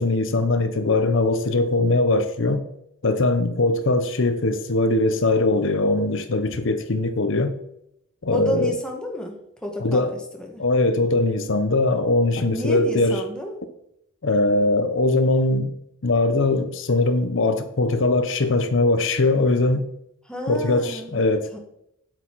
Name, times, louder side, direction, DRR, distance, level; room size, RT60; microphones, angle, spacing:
voice 1, 0.0-2.6 3.0-7.5 8.2-8.7 9.8-10.1 10.6-13.2 14.2-15.7 16.0-19.8 20.5-21.5, left 2 dB, 65° left, 0.8 m, -21 dB
voice 2, 8.3-9.4 9.6-10.0 10.4-10.6 12.5-13.6 20.3-21.2 21.5-21.6, left 1 dB, 5° left, 1.7 m, -30 dB
8.2 x 8.0 x 4.7 m
head